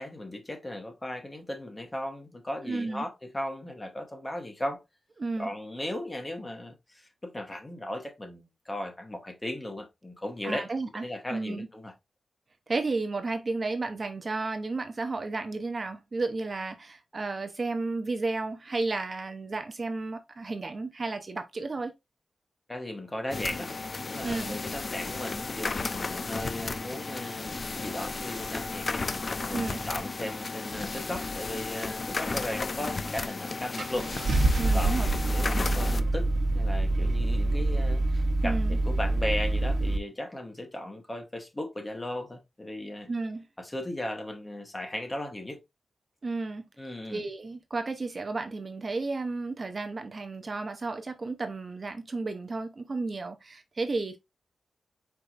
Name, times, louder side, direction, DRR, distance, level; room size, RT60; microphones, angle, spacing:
voice 1, 0.0-4.8 5.4-10.7 11.0-11.9 22.7-23.7 24.0-29.0 29.5-34.1 34.7-43.1 43.6-45.6 46.8-47.3, left 1 dB, 15° left, 1.2 m, -37 dB
voice 2, 2.7-3.0 5.2-5.5 10.4-11.0 11.3-11.7 12.7-21.9 24.2-24.6 29.5-29.8 34.6-35.1 38.4-38.8 43.1-43.5 46.2-46.6 47.1-54.2, right 3 dB, 35° right, 0.6 m, -32 dB
sound 1, 23.3-36.0, left 3 dB, 40° left, 0.4 m, -34 dB
Car / Engine starting, 33.1-33.2 33.8-40.0, right 2 dB, 70° right, 1.0 m, -26 dB
4.7 x 4.6 x 2.5 m
wide cardioid pair, 140°, 0 cm